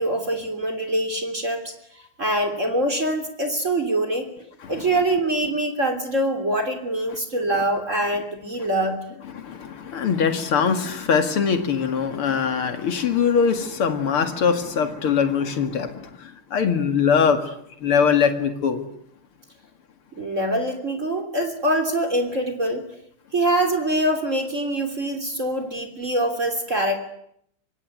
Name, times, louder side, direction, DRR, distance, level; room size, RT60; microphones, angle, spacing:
voice 1, 0.0-4.3 4.7-9.0 20.2-22.8 23.3-27.0, right 1 dB, 35° right, 6 dB, 3.6 m, -24 dB
voice 2, 9.3-17.5 17.8-18.9, left 6 dB, 90° left, 7 dB, 3.0 m, -22 dB
25.5 x 24.5 x 9.5 m, 0.71 s
omnidirectional pair, 2.3 m